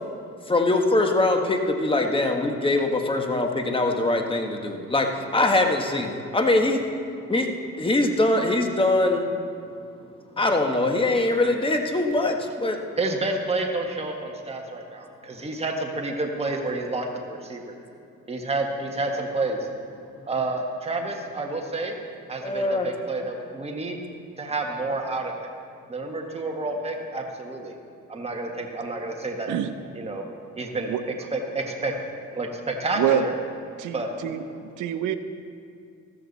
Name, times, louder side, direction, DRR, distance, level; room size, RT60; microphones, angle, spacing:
voice 1, 0.5-6.8 7.3-7.5 7.8-9.3 10.4-12.8 22.4-22.9, left 2 dB, 15° left, 3 dB, 1.4 m, -22 dB
voice 2, 12.9-17.7 18.3-19.7 20.3-21.9 22.3-24.0 24.4-25.5 25.9-27.7 28.1-29.5 29.9-30.2 30.6-30.9 31.3-31.9 32.3-33.3 33.9-34.1, right 2 dB, 20° right, 1 dB, 1.6 m, -29 dB
voice 3, 33.8-34.4 34.8-35.2, right 10 dB, 85° right, 10 dB, 0.8 m, -25 dB
14.0 x 13.5 x 4.2 m, 2.4 s
cardioid pair, 90°, 30 cm